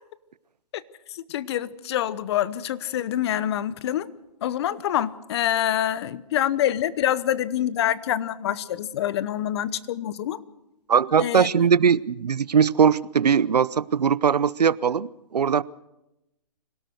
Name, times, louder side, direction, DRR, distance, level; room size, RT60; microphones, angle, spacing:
voice 1, 1.1-4.1 4.4-10.4 11.2-11.5, left 11 dB, 40° left, 0.9 m, -26 dB
voice 2, 10.9-15.6, right 7 dB, 90° right, 0.7 m, -20 dB
25.5 x 17.5 x 6.5 m
hypercardioid pair, 145°, 20 cm